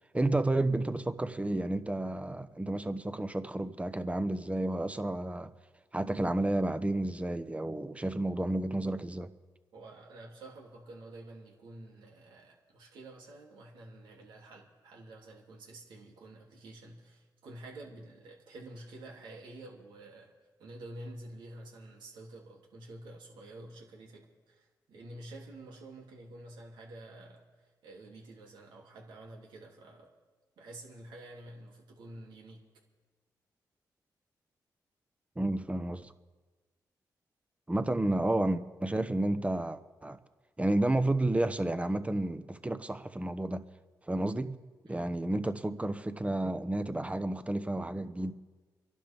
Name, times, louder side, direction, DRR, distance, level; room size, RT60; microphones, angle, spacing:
voice 1, 0.1-5.5 5.9-9.3 35.4-36.1 37.7-40.2 40.6-43.6 44.1-44.5 44.9-48.3, right 1 dB, 15° right, 1.1 m, -31 dB
voice 2, 9.7-20.3 20.6-30.1 30.6-32.6 44.8-45.1, right 2 dB, 85° right, 2.9 m, -49 dB
29.0 x 11.5 x 3.6 m
supercardioid pair, 50°, 8 cm